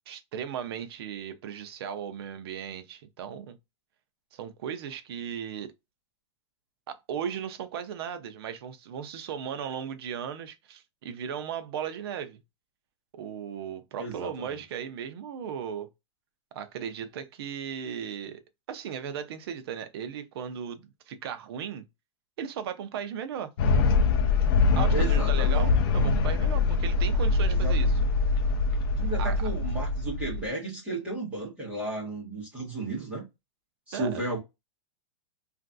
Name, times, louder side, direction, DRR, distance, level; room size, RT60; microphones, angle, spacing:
voice 1, 0.1-3.6 4.3-5.7 6.9-12.4 13.1-15.9 16.5-18.4 18.7-21.8 22.4-23.5 24.8-27.9 29.2-29.3 33.9-34.2, right 8 dB, 50° right, 0.5 m, -36 dB
voice 2, 14.0-14.6 24.9-25.7 27.5-28.3 28.9-33.3 33.9-34.4, right 2 dB, 10° right, 1.2 m, -34 dB
sound 1, 23.6-30.5, left 3 dB, 45° left, 0.4 m, -23 dB
3.0 x 2.5 x 2.5 m
supercardioid pair, 165°, 16 cm